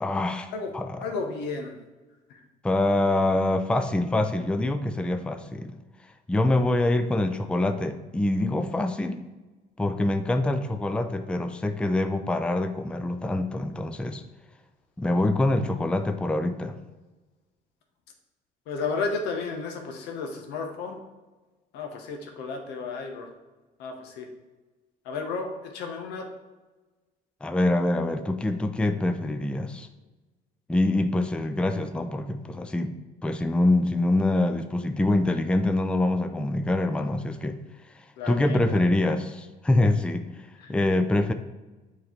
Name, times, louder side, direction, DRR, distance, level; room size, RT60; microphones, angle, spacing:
voice 1, 0.0-1.0 2.6-5.8 6.3-9.2 9.8-14.2 15.0-16.8 27.4-29.9 30.7-32.9 33.2-37.6 38.3-40.3 40.7-41.3, left 2 dB, 5° left, 8 dB, 0.4 m, -25 dB
voice 2, 1.0-1.8 2.3-2.4 18.7-21.0 21.7-23.3 23.8-24.3 25.0-26.3 38.2-38.6 40.6-40.8, left 4 dB, 90° left, 3 dB, 1.1 m, -33 dB
8.2 x 3.2 x 4.4 m, 1.2 s
cardioid pair, 110°, 17 cm